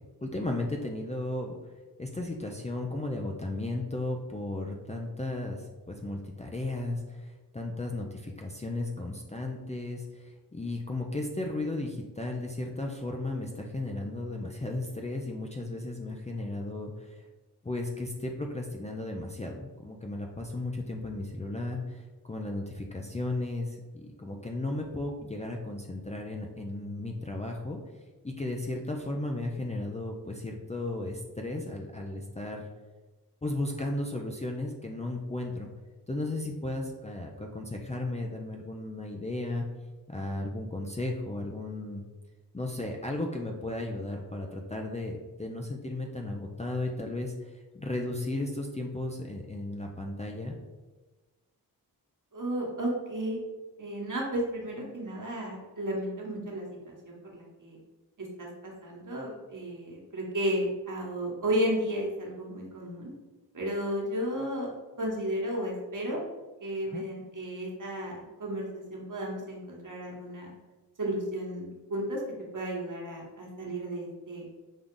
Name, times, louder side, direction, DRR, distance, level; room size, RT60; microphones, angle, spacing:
voice 1, 0.2-1.6 2.0-7.2 7.5-10.0 10.5-17.1 17.6-27.8 28.2-32.7 33.4-35.7 36.1-39.6 40.1-42.0 42.5-47.3 47.7-50.5 66.9-67.0, left 2 dB, 15° left, 1 dB, 0.5 m, -35 dB
voice 2, 52.3-53.4 53.8-57.8 58.2-63.1 63.5-64.7 65.0-66.2 66.6-70.5 71.0-72.2 72.5-74.5, equal, 50° right, -2 dB, 1.4 m, -33 dB
5.4 x 2.3 x 3.7 m, 1.2 s
cardioid pair, 50°, 40 cm